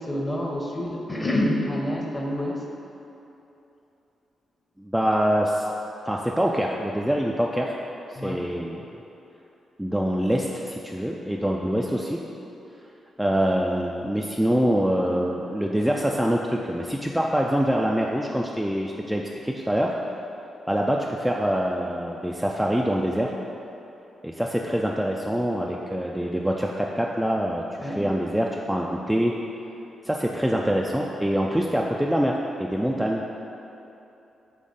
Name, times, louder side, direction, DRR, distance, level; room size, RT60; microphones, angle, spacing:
voice 1, 0.0-2.6 8.2-8.5 27.8-28.1, left 1 dB, 25° left, -1 dB, 0.8 m, -27 dB
voice 2, 4.8-5.7 6.1-7.8 8.1-8.8 9.8-12.2 13.2-19.9 20.7-23.3 24.2-29.3 30.0-33.2, equal, 5° right, -2 dB, 0.3 m, -25 dB
3.6 x 3.2 x 3.9 m, 2.9 s
hypercardioid pair, 40°, 0 cm